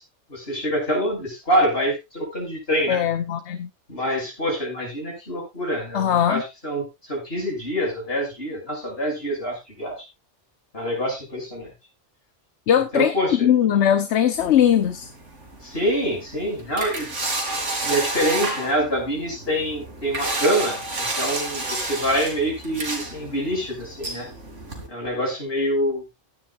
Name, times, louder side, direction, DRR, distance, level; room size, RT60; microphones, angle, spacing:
voice 1, 0.3-3.0 3.9-10.0 10.7-11.7 12.9-13.5 15.6-17.1 17.8-24.3 24.9-26.0, equal, 55° left, 0 dB, 6.7 m, -25 dB
voice 2, 2.9-3.7 5.9-6.4 12.7-15.1, left 10 dB, 75° left, 10 dB, 1.1 m, -20 dB
sound 1, 14.4-24.9, right 2 dB, 90° right, 3.0 m, -31 dB
16.0 x 10.5 x 2.5 m, 0.23 s
omnidirectional pair, 1.2 m